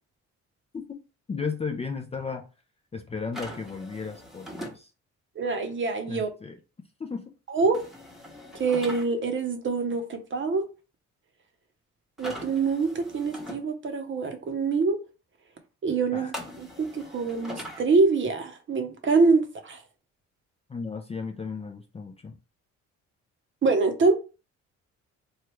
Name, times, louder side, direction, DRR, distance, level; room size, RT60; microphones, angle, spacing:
voice 1, 1.3-2.5 2.9-4.9 6.1-6.5 7.0-7.3 16.1-16.3 20.7-22.4, left 5 dB, 20° left, 3 dB, 0.4 m, -34 dB
sound 1, 3.3-4.8 7.7-9.0 12.2-13.6 16.3-17.8, equal, ahead, 0.9 m, -41 dB
voice 2, 5.4-6.3 7.5-7.9 8.5-10.7 12.2-15.0 15.8-19.8 23.6-24.1, right 4 dB, 40° right, 6 dB, 0.8 m, -25 dB
3.2 x 2.3 x 3.0 m, 0.32 s
cardioid pair, 90°, 30 cm